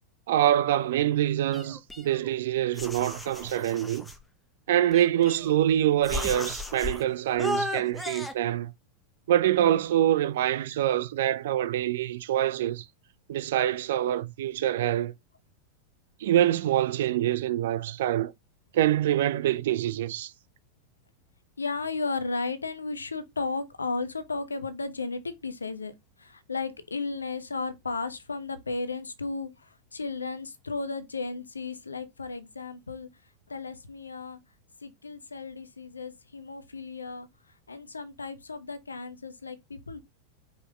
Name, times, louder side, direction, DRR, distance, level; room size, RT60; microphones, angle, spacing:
voice 1, 0.3-4.0 4.7-8.7 9.3-12.9 13.3-15.1 16.2-18.3 18.7-20.3, right 12 dB, 55° right, 0.4 m, -25 dB
sound 1, 1.5-2.4 2.8-4.2 4.9-5.7 6.0-7.0 7.4-8.3, left 1 dB, 5° left, 0.9 m, -35 dB
voice 2, 21.6-25.9 26.2-33.1 33.5-34.4 34.8-37.3 37.7-40.0, left 3 dB, 75° left, 0.8 m, -34 dB
5.2 x 4.3 x 2.3 m
figure-of-eight pair, 90°, 0 cm